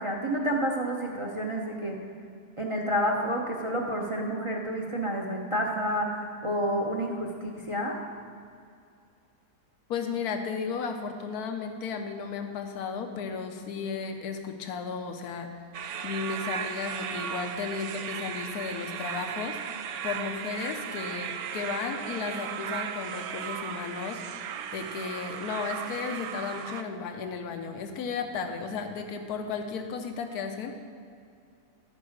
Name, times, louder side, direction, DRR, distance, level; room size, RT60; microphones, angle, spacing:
voice 1, 0.0-2.0 2.6-8.0, equal, 30° right, 0 dB, 0.6 m, -29 dB
voice 2, 9.9-15.5 16.0-24.2 24.7-30.8, left 5 dB, 85° left, 5 dB, 1.3 m, -34 dB
sound 1, 15.7-26.8, right 8 dB, 80° right, 1.1 m, -36 dB
12.5 x 4.8 x 6.4 m, 2.4 s
omnidirectional pair, 1.6 m